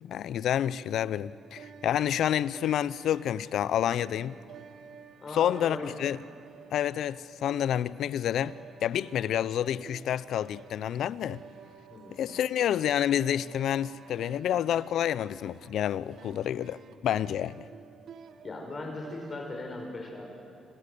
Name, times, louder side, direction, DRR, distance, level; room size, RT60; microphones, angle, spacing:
voice 1, 0.0-4.4 5.3-6.2 6.7-11.4 12.1-17.7, left 10 dB, 75° left, 0.6 m, -29 dB
sound 1, 0.8-19.6, right 7 dB, 65° right, 1.6 m, -51 dB
voice 2, 5.2-6.0 11.9-12.2 18.4-20.4, left 2 dB, 35° left, 4.9 m, -39 dB
29.0 x 26.5 x 6.8 m
cardioid pair, 90°, 0 cm